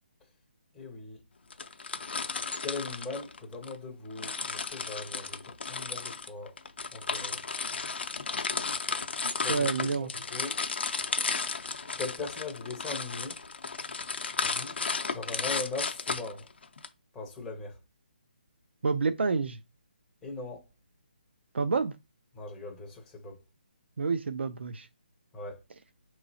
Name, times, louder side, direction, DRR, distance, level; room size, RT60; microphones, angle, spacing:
voice 1, 0.7-1.2 2.6-6.5 6.9-7.4 7.9-8.2 9.4-10.6 12.0-13.4 14.4-14.8 15.1-16.5 17.1-17.8 20.2-20.7 22.3-23.4 25.3-25.6, left 3 dB, 5° left, 0.5 m, -40 dB
sound 1, 1.5-3.8 4.2-16.9, left 4 dB, 70° left, 0.6 m, -34 dB
voice 2, 9.2-10.1 18.8-19.6 21.5-22.0 24.0-24.9, right 4 dB, 75° right, 0.4 m, -29 dB
4.6 x 3.0 x 2.6 m
hypercardioid pair, 170°, 6 cm